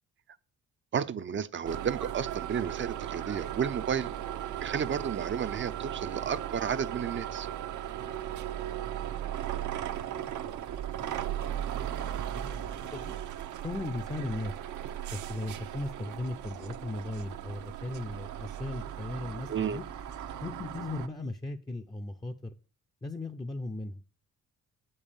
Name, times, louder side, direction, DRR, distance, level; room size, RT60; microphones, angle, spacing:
voice 1, 0.9-4.1 4.6-7.5 19.5-19.8, right 7 dB, 40° right, 0.6 m, -32 dB
sound 1, 1.6-21.1, right 11 dB, 75° right, 0.9 m, -37 dB
voice 2, 10.1-10.6 11.0-13.1 13.6-14.5 15.1-19.9 20.4-22.6 23.0-24.0, left 2 dB, 15° left, 0.6 m, -38 dB
7.8 x 5.5 x 7.0 m
cardioid pair, 90°, 30 cm